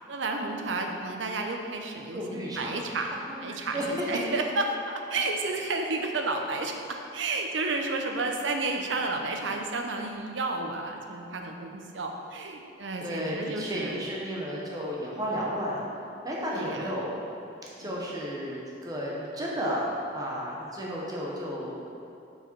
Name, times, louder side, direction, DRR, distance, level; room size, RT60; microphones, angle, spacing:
voice 1, 0.0-14.1 16.5-16.9 17.8-18.1, right 3 dB, 85° right, 3 dB, 0.7 m, -32 dB
voice 2, 2.1-2.7 3.3-3.9 4.1-4.3 13.0-15.8 16.2-17.1 17.8-19.9 20.1-21.7, equal, 20° right, -5 dB, 1.0 m, -33 dB
6.5 x 4.9 x 4.6 m, 2.6 s
head